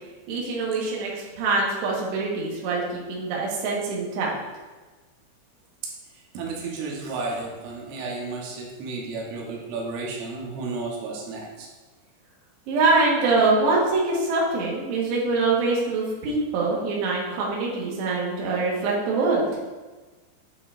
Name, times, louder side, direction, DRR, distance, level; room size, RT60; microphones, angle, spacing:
voice 1, 0.3-4.3 12.7-19.5, right 3 dB, 70° right, -4 dB, 3.4 m, -24 dB
voice 2, 6.4-11.7, right 3 dB, 90° right, -2 dB, 3.8 m, -32 dB
9.2 x 7.5 x 2.6 m, 1.3 s
omnidirectional pair, 5.5 m